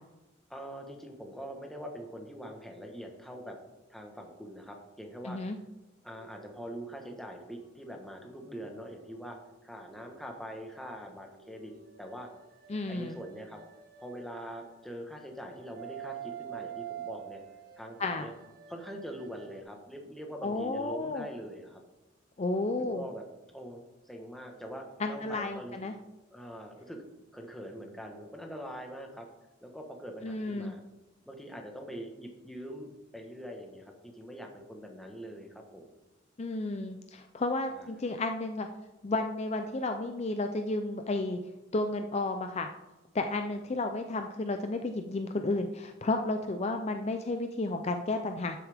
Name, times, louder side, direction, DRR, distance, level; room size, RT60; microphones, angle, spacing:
voice 1, 0.5-3.6 3.9-5.4 6.0-9.4 9.6-11.7 12.0-12.3 12.9-13.6 14.0-17.4 17.8-18.3 18.7-21.8 22.8-23.2 23.5-25.7 26.3-27.0 27.3-29.3 29.6-30.8 31.3-35.9 37.8-37.9, equal, ahead, 2 dB, 1.2 m, -43 dB
voice 2, 5.2-5.6 12.7-13.2 18.0-18.3 20.4-21.3 22.4-23.0 25.0-25.9 30.2-30.7 36.4-38.7 39.0-41.4 41.7-42.7 43.1-48.6, left 2 dB, 35° left, 6 dB, 0.5 m, -32 dB
sound 1, 6.1-10.2 11.3-14.8 15.3-19.6, right 10 dB, 50° right, 1.1 m, -48 dB
12.0 x 6.9 x 3.5 m, 1.1 s
head